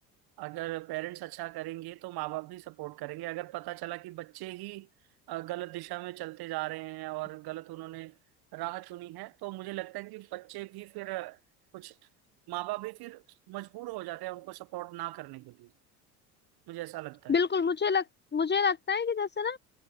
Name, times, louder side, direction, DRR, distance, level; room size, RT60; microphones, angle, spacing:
voice 1, 0.4-4.9 5.3-8.2 8.5-11.4 11.7-12.0 12.5-15.7 16.7-17.3, right 19 dB, 50° right, 1.1 m, -39 dB
voice 2, 17.3-18.0 18.3-19.6, left 6 dB, 20° left, 1.5 m, -27 dB
hypercardioid pair, 75°, 47 cm